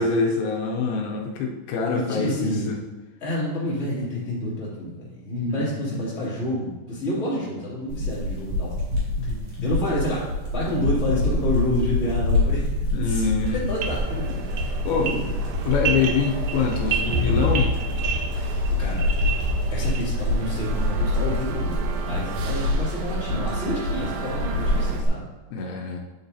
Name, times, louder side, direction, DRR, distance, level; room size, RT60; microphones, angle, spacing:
voice 1, 0.0-2.8 5.5-6.0 9.2-9.5 12.9-13.6 14.9-15.1 15.7-17.7 25.5-26.0, left 4 dB, 85° left, 0 dB, 2.5 m, -25 dB
voice 2, 1.9-2.7 3.2-8.8 9.2-9.3 9.6-15.3 15.7-16.0 18.3-19.0 19.7-25.3, equal, 20° left, -9 dB, 2.6 m, -29 dB
sound 1, 7.9-25.1, left 2 dB, 40° right, 2.6 m, -26 dB
sound 2, 13.4-20.2, right 1 dB, 70° right, 2.4 m, -28 dB
sound 3, 13.8-25.0, right 5 dB, 85° right, 1.7 m, -37 dB
8.9 x 7.0 x 2.8 m, 1.1 s
omnidirectional pair, 4.4 m